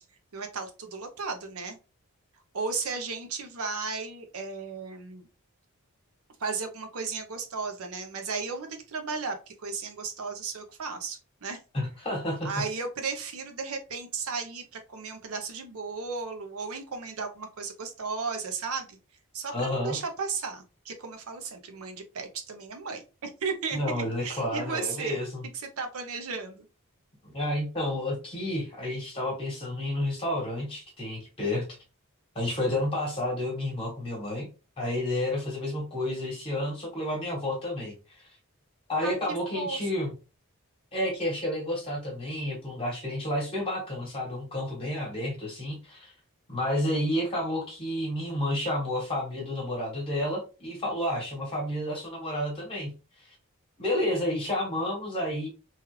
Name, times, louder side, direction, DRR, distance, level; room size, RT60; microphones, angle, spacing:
voice 1, 0.3-1.8 2.5-5.3 6.4-11.6 12.4-19.0 19.3-25.2 25.5-26.7 39.0-39.2 39.5-39.8, right 4 dB, 80° right, 5 dB, 0.7 m, -35 dB
voice 2, 11.7-12.5 19.5-20.0 23.7-25.4 27.2-31.6 32.3-34.5 34.8-38.3 38.9-40.1 40.9-46.1 46.5-52.9 53.3-53.4 53.8-55.5, left 1 dB, 25° left, -2 dB, 1.2 m, -30 dB
3.1 x 2.4 x 3.1 m, 0.32 s
head